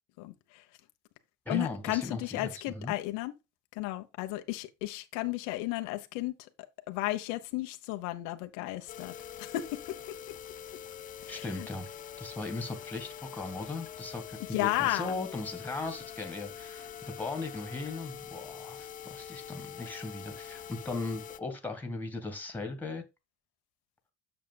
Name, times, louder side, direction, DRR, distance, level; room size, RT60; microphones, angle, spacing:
voice 1, 0.2-0.6 1.5-3.3 3.7-6.5 6.9-9.1 9.4-10.3 11.2-11.7 14.5-15.2, left 17 dB, 90° left, 1.1 m, -34 dB
voice 2, 1.5-2.9 11.3-11.9 12.2-23.0, left 3 dB, 5° left, 1.9 m, -38 dB
sound 1, 8.9-21.4, left 9 dB, 30° left, 0.4 m, -45 dB
9.1 x 6.8 x 2.3 m
cardioid pair, 145°, 30 cm